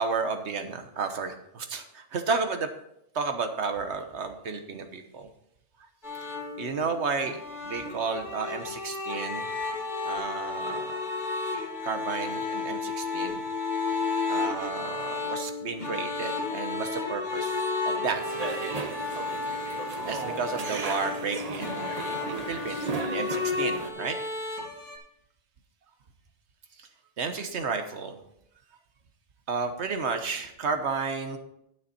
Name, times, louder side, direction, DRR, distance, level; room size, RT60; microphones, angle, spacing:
voice 1, 0.0-2.7 3.1-5.3 6.6-9.5 10.0-10.9 11.8-13.4 14.3-18.2 20.0-24.2 26.8-26.9 27.2-28.2 29.5-31.4, right 5 dB, 75° right, 7 dB, 1.4 m, -32 dB
sound 1, 6.0-25.0, left 4 dB, 40° left, 1.9 m, -32 dB
sound 2, 18.1-23.9, right 4 dB, 40° right, 0.8 m, -36 dB
9.7 x 8.8 x 4.3 m, 0.76 s
omnidirectional pair, 1.2 m